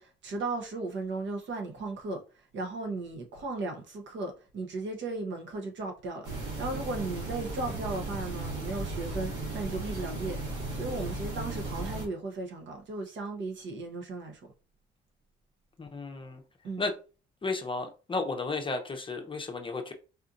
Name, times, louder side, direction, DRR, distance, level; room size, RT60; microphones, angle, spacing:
voice 1, 0.0-2.2 2.5-10.4 10.7-14.5 16.6-16.9, right 3 dB, 65° right, 1.0 m, -36 dB
sound 1, 6.2-12.1, right 2 dB, 90° right, 1.6 m, -36 dB
voice 2, 15.8-16.4 16.8-16.9 17.4-19.9, left 3 dB, 25° left, 0.6 m, -33 dB
4.2 x 2.7 x 2.5 m
cardioid pair, 90°, 20 cm